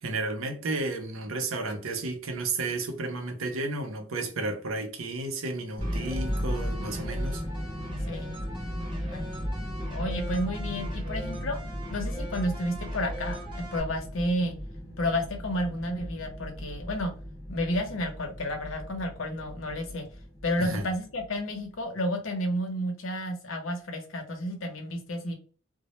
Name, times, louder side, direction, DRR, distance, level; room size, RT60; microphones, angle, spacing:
voice 1, 0.0-7.4 20.6-20.8, right 2 dB, 80° right, 0.6 m, -32 dB
sound 1, 5.8-21.6, equal, 15° left, 0.6 m, -36 dB
sound 2, 5.8-13.8, right 1 dB, 25° right, 0.7 m, -43 dB
voice 2, 9.9-11.6 11.9-14.6 15.0-17.1 17.5-20.1 20.4-25.3, equal, 75° left, 0.7 m, -31 dB
2.1 x 2.0 x 2.9 m
head